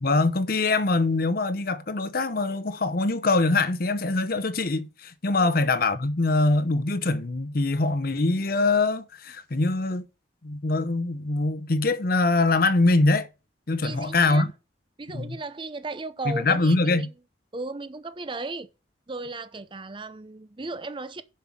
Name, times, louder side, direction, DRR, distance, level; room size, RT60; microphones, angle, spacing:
voice 1, 0.0-10.1 10.4-13.3 13.7-14.5 15.1-15.4 16.2-17.1, left 3 dB, 55° left, 0.8 m, -23 dB
voice 2, 13.8-14.5 15.0-17.1 17.5-18.7 19.1-21.2, right 3 dB, 25° right, 0.6 m, -36 dB
7.3 x 5.7 x 5.9 m
head